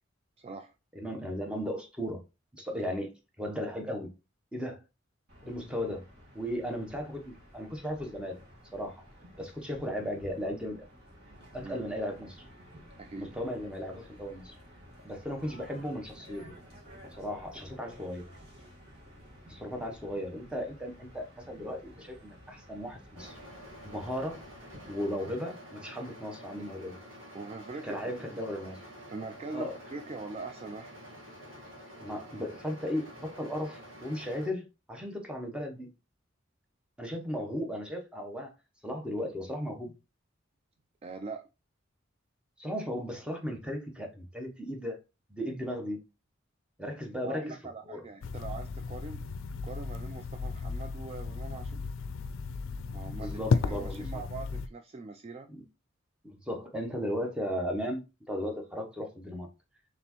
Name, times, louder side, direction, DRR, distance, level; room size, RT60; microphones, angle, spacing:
voice 1, 0.4-0.7 2.7-2.8 11.6-11.8 13.0-13.3 27.3-28.4 29.1-30.9 41.0-41.4 47.2-49.2 49.6-51.8 52.9-55.5, right 3 dB, 30° right, 0.3 m, -42 dB
voice 2, 0.9-2.2 2.5-3.1 3.4-4.1 4.5-4.8 5.4-6.0 6.3-8.4 8.7-9.0 9.4-10.9 11.5-12.4 13.2-14.6 15.0-16.5 17.1-18.3 19.5-23.4 23.8-24.4 24.9-27.0 27.8-28.8 29.5-29.7 32.0-35.9 37.0-38.5 38.8-39.9 42.6-45.0 45.3-46.0 46.8-47.5 47.9-48.0 53.1-54.2 55.5-55.6 56.2-59.5, equal, 5° right, 0.8 m, -36 dB
sound 1, 5.3-24.9, equal, 55° right, 1.6 m, -53 dB
sound 2, 23.2-34.5, equal, 80° right, 1.5 m, -49 dB
sound 3, 48.2-54.7, left 4 dB, 80° left, 0.4 m, -34 dB
4.2 x 3.4 x 2.9 m
head